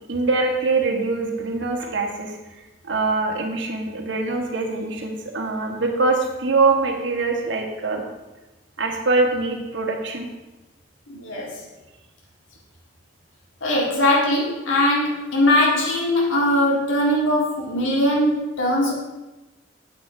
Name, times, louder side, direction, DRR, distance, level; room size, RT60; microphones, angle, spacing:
voice 1, 0.1-2.4 2.8-8.0 8.8-10.3, right 3 dB, 75° right, 1 dB, 1.7 m, -23 dB
voice 2, 11.1-11.6 13.6-18.9, left 1 dB, 90° left, -3 dB, 2.0 m, -20 dB
9.2 x 7.8 x 4.8 m, 1.1 s
head